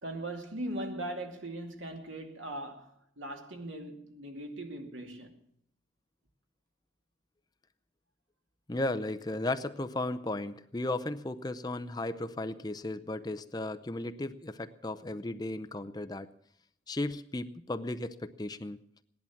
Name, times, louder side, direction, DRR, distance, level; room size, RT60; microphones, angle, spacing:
voice 1, 0.0-5.4, right 1 dB, 90° right, 2.5 m, -39 dB
voice 2, 8.7-16.3 16.9-18.8, left 2 dB, 20° left, 0.6 m, -35 dB
17.0 x 11.0 x 7.2 m
head